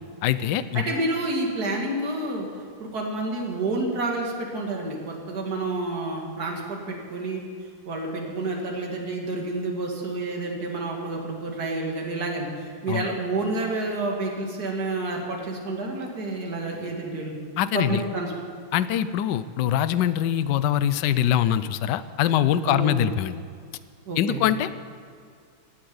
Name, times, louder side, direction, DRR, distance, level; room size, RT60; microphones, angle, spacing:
voice 1, 0.2-0.8 12.9-13.1 17.6-18.0 18.7-23.3 24.2-24.8, left 10 dB, 70° left, 14 dB, 1.2 m, -23 dB
voice 2, 0.7-2.5 2.8-7.4 7.9-17.3 17.7-18.3 22.6-22.9 24.1-24.5, right 2 dB, 55° right, 0 dB, 2.7 m, -29 dB
16.5 x 8.6 x 9.5 m, 2.2 s
omnidirectional pair, 2.1 m